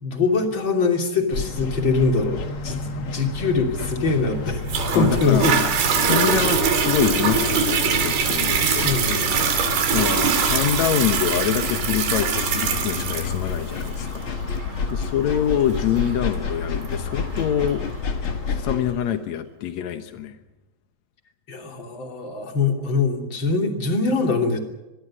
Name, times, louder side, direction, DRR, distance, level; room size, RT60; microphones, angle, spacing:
voice 1, 0.0-4.6 4.9-5.6 8.6-9.5 21.5-24.6, left 3 dB, 30° left, 3 dB, 3.2 m, -23 dB
sound 1, 1.3-18.9, left 4 dB, 50° left, 1.5 m, -30 dB
Toilet flush, 4.7-17.7 18.3-18.4, right 6 dB, 85° right, 5.1 m, -23 dB
voice 2, 4.9-5.5 5.9-8.9 9.3-14.2 14.9-17.8 18.6-20.3, left 9 dB, 85° left, 8 dB, 1.6 m, -25 dB
24.5 x 21.5 x 6.4 m, 1.0 s
omnidirectional pair, 5.0 m